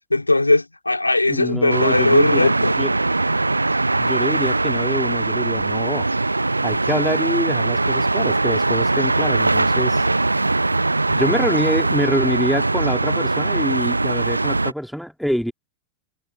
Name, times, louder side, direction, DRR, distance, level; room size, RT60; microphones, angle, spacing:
voice 1, 0.1-2.7, left 2 dB, 85° left, 2.2 m, -18 dB
voice 2, 1.3-2.5 2.8-2.9 4.0-6.1 6.6-10.0 11.1-15.5, equal, ahead, 3.0 m, -25 dB
sound 1, 1.7-14.7, right 2 dB, 80° right, 0.7 m, -21 dB
figure-of-eight pair, 90°, 0 cm